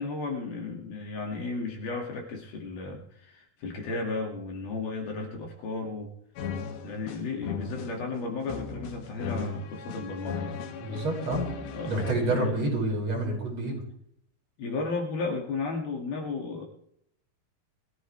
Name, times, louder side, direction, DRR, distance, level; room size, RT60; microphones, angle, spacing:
voice 1, 0.0-6.1 6.8-10.6 11.6-12.6 14.6-16.7, left 3 dB, 65° left, 0 dB, 4.1 m, -34 dB
sound 1, 6.4-12.1, left 5 dB, 85° left, 4.0 m, -37 dB
voice 2, 10.8-11.5 11.9-13.9, right 2 dB, 35° right, -2 dB, 7.2 m, -28 dB
23.0 x 17.0 x 3.4 m, 0.70 s
omnidirectional pair, 4.9 m